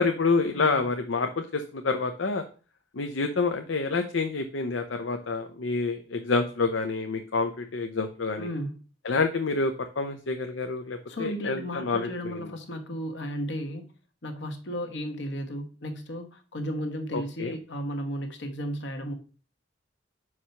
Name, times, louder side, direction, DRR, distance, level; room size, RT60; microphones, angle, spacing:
voice 1, 0.0-2.5 2.9-8.5 9.0-12.5 17.1-17.5, left 4 dB, 90° left, 6 dB, 0.7 m, -28 dB
voice 2, 8.4-8.8 11.1-13.8 14.2-19.1, equal, 70° left, 5 dB, 1.2 m, -34 dB
5.6 x 4.8 x 5.8 m, 0.38 s
head